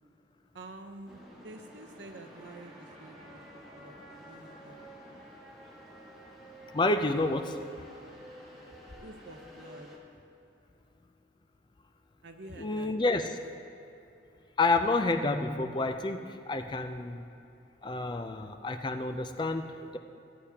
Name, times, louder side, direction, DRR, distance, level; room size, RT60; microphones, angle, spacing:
voice 1, 0.5-4.8 5.1-5.2 9.0-9.9 12.2-12.9, right 2 dB, 85° right, 4 dB, 0.8 m, -49 dB
sound 1, 1.1-10.0, equal, ahead, 1.5 m, -50 dB
voice 2, 6.7-7.6 12.6-13.4 14.6-17.2 17.8-20.0, left 2 dB, 25° left, 7 dB, 0.4 m, -29 dB
15.0 x 8.4 x 2.8 m, 2.8 s
head